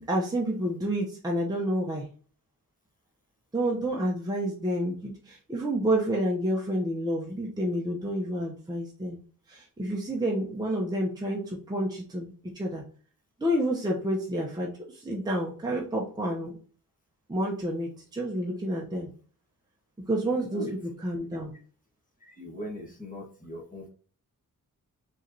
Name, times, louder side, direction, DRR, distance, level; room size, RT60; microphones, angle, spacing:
voice 1, 0.1-2.1 3.5-9.2 9.5-12.8 13.4-16.6 17.3-19.1 20.1-21.5, right 1 dB, 10° right, -3 dB, 0.7 m, -29 dB
voice 2, 20.3-20.7 22.2-23.9, left 1 dB, 25° left, -1 dB, 1.3 m, -40 dB
4.7 x 3.1 x 2.7 m, 0.42 s
wide cardioid pair, 125°, 34 cm